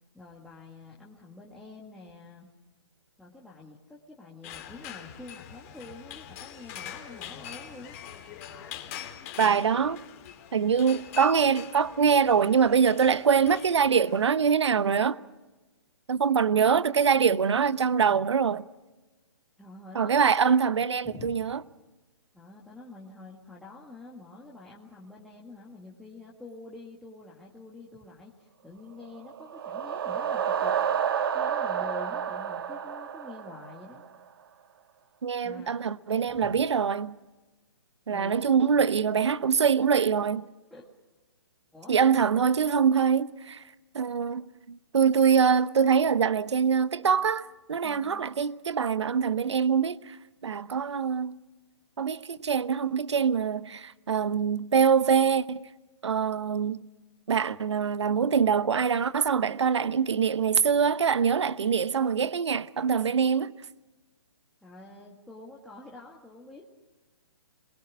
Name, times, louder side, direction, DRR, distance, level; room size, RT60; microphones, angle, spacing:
voice 1, 0.1-2.5 3.2-8.0 19.6-20.4 21.0-21.5 22.3-31.0 31.3-34.0 35.4-35.7 36.3-36.6 38.1-38.4 40.7-40.9 41.7-42.0 47.8-48.2 64.6-66.6, left 2 dB, ahead, 1.9 m, -47 dB
sound 1, 4.4-14.2, left 9 dB, 30° left, 2.6 m, -43 dB
voice 2, 9.4-10.0 10.5-15.2 16.1-18.6 19.9-21.6 35.2-37.2 38.1-40.5 41.9-43.6 43.9-50.2 50.4-51.4 52.0-55.7 56.0-56.9 57.3-63.5, right 6 dB, 75° right, 1.0 m, -24 dB
sound 2, 29.2-34.1, right 8 dB, 55° right, 1.6 m, -30 dB
27.5 x 22.0 x 6.3 m
hypercardioid pair, 150°, 15 cm